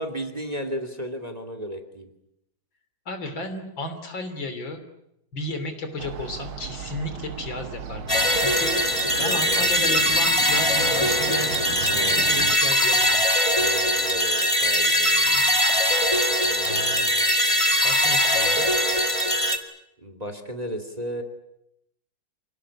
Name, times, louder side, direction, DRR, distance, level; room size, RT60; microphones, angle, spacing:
voice 1, 0.0-2.1 9.2-10.0 11.9-12.2 13.6-15.4 16.4-17.0 20.0-21.2, equal, 20° right, 8 dB, 2.5 m, -34 dB
voice 2, 3.1-4.8 5.3-8.8 9.2-13.2 15.3-15.5 16.1-16.3 16.6-17.1 17.8-18.7, left 2 dB, 65° left, 8 dB, 4.0 m, -33 dB
sound 1, 6.0-12.6, right 7 dB, 85° right, 2.1 m, -36 dB
sound 2, 8.1-19.6, equal, 15° left, 2.1 m, -21 dB
27.5 x 18.5 x 10.0 m, 0.82 s
omnidirectional pair, 2.3 m